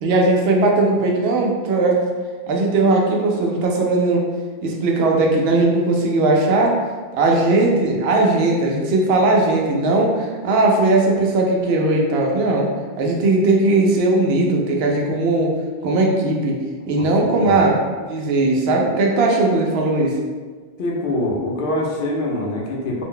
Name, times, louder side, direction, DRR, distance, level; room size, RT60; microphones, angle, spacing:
voice 1, 0.0-2.0 2.5-4.2 4.6-6.8 7.1-12.7 13.0-15.5 15.8-16.6 16.9-17.8 18.1-20.1, right 2 dB, 80° right, 0 dB, 0.8 m, -18 dB
voice 2, 17.0-17.7 20.8-23.0, left 1 dB, 65° left, -3 dB, 0.7 m, -24 dB
2.4 x 2.1 x 3.7 m, 1.5 s
omnidirectional pair, 1.0 m